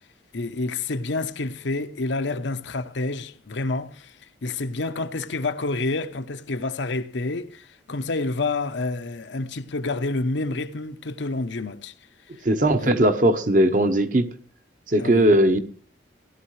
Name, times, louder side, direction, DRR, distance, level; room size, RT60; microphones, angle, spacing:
voice 1, 0.3-4.2 4.4-11.9 12.8-13.0 15.0-15.3, left 3 dB, 80° left, 0.8 m, -28 dB
voice 2, 12.4-14.3 14.9-15.6, right 1 dB, 45° right, 1.0 m, -19 dB
17.0 x 12.0 x 3.2 m
head